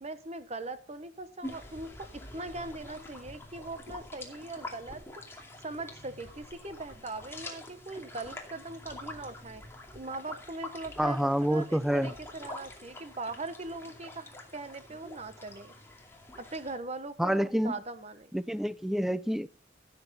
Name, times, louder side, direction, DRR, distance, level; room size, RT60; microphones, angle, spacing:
voice 1, 0.0-5.0 5.6-9.6 9.9-15.7 16.4-18.3, right 2 dB, 35° right, 11 dB, 1.1 m, -40 dB
sound 1, 1.4-16.8, left 2 dB, 15° left, 2.4 m, -46 dB
voice 2, 11.0-12.1 17.2-17.7 18.3-19.5, equal, ahead, 17 dB, 0.4 m, -28 dB
15.5 x 8.0 x 4.2 m, 0.38 s
head